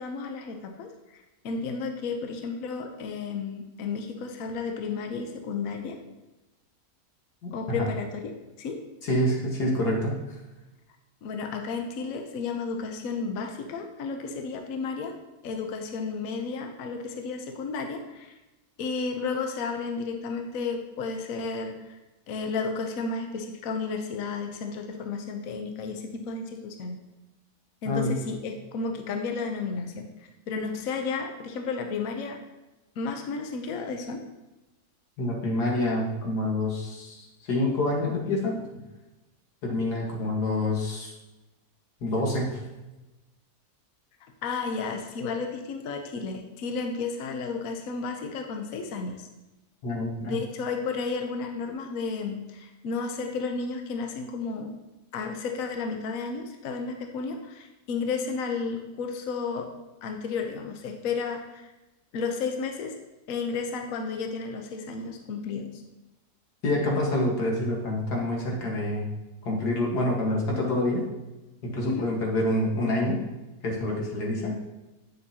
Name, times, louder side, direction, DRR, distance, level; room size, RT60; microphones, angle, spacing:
voice 1, 0.0-6.0 7.5-8.8 11.2-15.1 15.4-18.4 18.8-22.0 22.3-27.0 27.8-32.4 33.0-34.2 44.2-49.3 50.2-54.7 55.1-59.7 60.0-61.7 62.1-63.0 63.3-65.8 71.8-72.1, left 4 dB, 65° left, 4 dB, 1.1 m, -32 dB
voice 2, 9.0-10.4 27.9-28.2 35.2-38.6 39.6-41.1 42.0-42.6 49.8-50.4 66.6-69.1 69.4-71.0 71.6-73.2 73.6-74.5, left 1 dB, 90° left, -2 dB, 2.1 m, -27 dB
9.0 x 6.7 x 2.8 m, 1.0 s
omnidirectional pair, 1.7 m